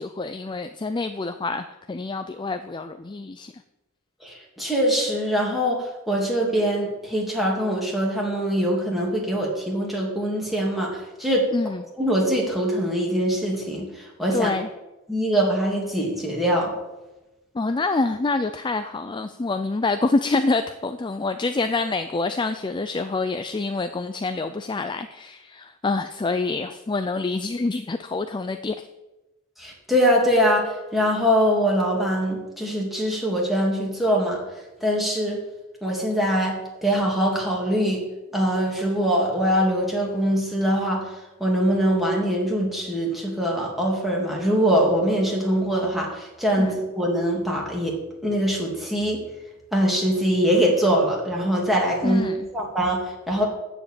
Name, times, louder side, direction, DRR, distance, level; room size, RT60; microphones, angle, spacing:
voice 1, 0.0-3.6 11.5-11.8 14.3-14.7 17.5-28.9 46.6-46.8 52.0-52.5, left 3 dB, 20° left, 9 dB, 0.4 m, -26 dB
voice 2, 4.2-11.5 12.0-14.5 15.1-16.8 29.6-34.4 34.8-35.4 35.8-38.0 38.3-41.1 41.4-48.0 48.2-49.2 49.7-52.2 52.5-53.4, equal, ahead, -3 dB, 2.8 m, -23 dB
13.5 x 5.1 x 8.6 m, 1.0 s
head